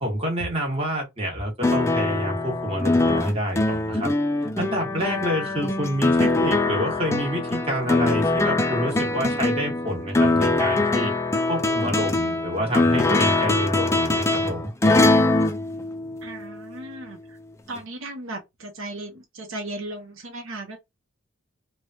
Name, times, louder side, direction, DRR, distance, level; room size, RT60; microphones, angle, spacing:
voice 1, 0.0-4.1 4.6-11.1 11.5-14.7, equal, 25° right, 1.2 m, -28 dB
sound 1, 1.6-16.5 17.8-17.9, left 2 dB, 15° left, 0.3 m, -22 dB
voice 2, 16.2-17.4 17.7-20.8, right 2 dB, 70° right, 0.8 m, -36 dB
3.2 x 2.2 x 2.7 m
head